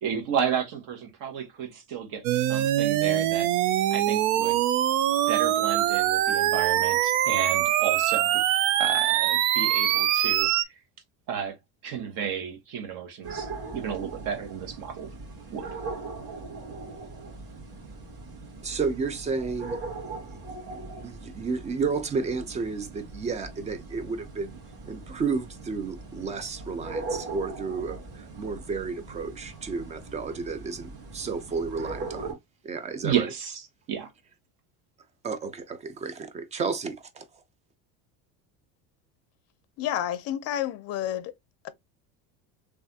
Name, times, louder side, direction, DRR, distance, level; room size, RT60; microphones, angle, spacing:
voice 1, 0.0-3.5 3.9-4.6 5.3-8.4 8.8-10.5 11.3-11.6 11.8-15.1 15.5-15.8 33.0-33.6 33.9-34.1, right 8 dB, 55° right, 1.1 m, -32 dB
sound 1, 2.2-10.6, right 12 dB, 85° right, 0.5 m, -23 dB
sound 2, 13.2-32.3, right 3 dB, 35° right, 1.8 m, -40 dB
voice 2, 18.6-19.8 20.2-24.6 24.9-32.4 32.6-33.3 35.2-37.3, right 4 dB, 20° right, 0.4 m, -32 dB
voice 3, 39.8-41.3, left 11 dB, 40° left, 0.5 m, -30 dB
3.2 x 2.4 x 2.7 m
cardioid pair, 135°, 39 cm